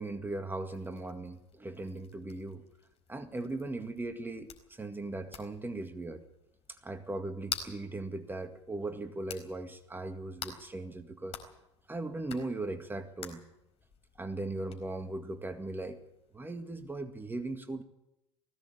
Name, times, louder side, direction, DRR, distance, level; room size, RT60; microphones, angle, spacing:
voice 1, 0.0-2.6 3.1-6.2 6.7-11.4 11.9-13.4 14.2-16.0 16.3-17.8, right 2 dB, 15° right, 8 dB, 2.0 m, -38 dB
sound 1, 0.7-17.0, left 8 dB, 45° left, 4.4 m, -49 dB
19.5 x 16.5 x 8.4 m, 0.87 s
hypercardioid pair, 80°, 15 cm